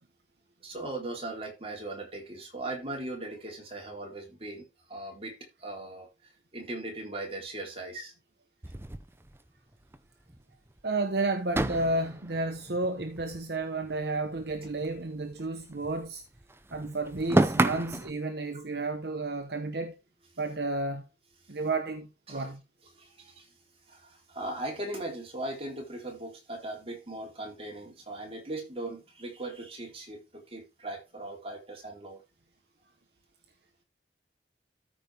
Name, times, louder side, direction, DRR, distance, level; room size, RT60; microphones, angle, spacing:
voice 1, 0.6-8.1 21.4-21.6 22.3-22.5 22.9-23.6 23.9-32.2, right 2 dB, 30° right, 3.5 m, -39 dB
sound 1, 8.6-10.0 10.3-10.4 10.7-10.8 11.5-14.0 14.3-16.1 16.3-18.1, right 1 dB, 15° right, 0.6 m, -31 dB
voice 2, 10.8-16.2 16.7-19.9 20.4-21.0 21.5-22.6, right 2 dB, 65° right, 1.0 m, -32 dB
13.5 x 5.2 x 3.5 m
head